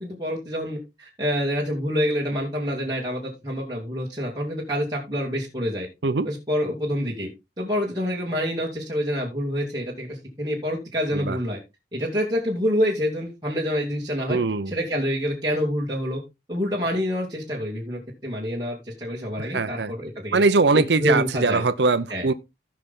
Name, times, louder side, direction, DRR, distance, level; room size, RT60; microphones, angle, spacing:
voice 1, 0.0-5.9 6.2-7.3 7.6-11.6 11.9-14.4 14.7-16.2 16.5-20.4 20.7-21.6 22.1-22.3, equal, 25° right, 2.6 m, -27 dB
voice 2, 14.3-14.7 19.4-19.9 20.3-22.3, right 3 dB, 75° right, 0.7 m, -21 dB
16.0 x 5.8 x 3.7 m
head